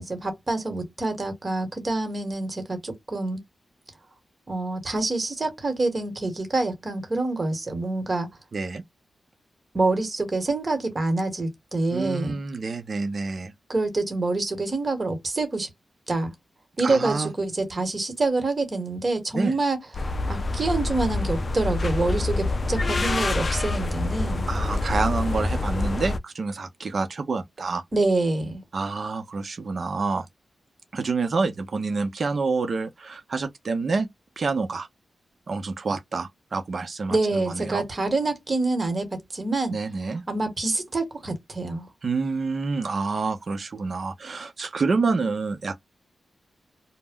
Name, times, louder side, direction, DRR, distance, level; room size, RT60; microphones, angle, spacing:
voice 1, 0.0-3.4 4.5-8.3 9.7-12.4 13.7-15.7 16.1-16.3 16.8-24.5 27.9-28.6 37.1-39.7 40.3-41.9, right 2 dB, 40° right, 1.2 m, -26 dB
voice 2, 8.5-8.8 11.9-13.5 16.8-17.3 19.3-19.6 24.5-27.8 28.7-30.3 30.9-34.1 34.4-34.9 35.5-37.8 39.7-40.2 42.0-45.8, right 4 dB, 60° right, 0.6 m, -28 dB
sound 1, 19.9-26.2, left 2 dB, 45° left, 0.4 m, -26 dB
2.1 x 2.1 x 3.5 m
cardioid pair, 70°, 0 cm